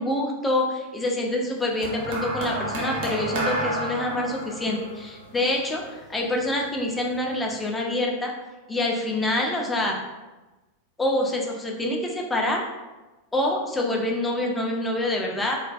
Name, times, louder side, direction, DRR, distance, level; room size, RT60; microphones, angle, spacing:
voice 1, 0.0-8.3 8.7-10.0 11.0-12.6 13.3-15.6, left 1 dB, 10° left, 0 dB, 0.4 m, -26 dB
sound 1, 1.8-6.3 7.2-7.4, right 1 dB, 50° right, 0.5 m, -31 dB
2.4 x 2.1 x 2.4 m, 1.1 s
figure-of-eight pair, 90°, 0 cm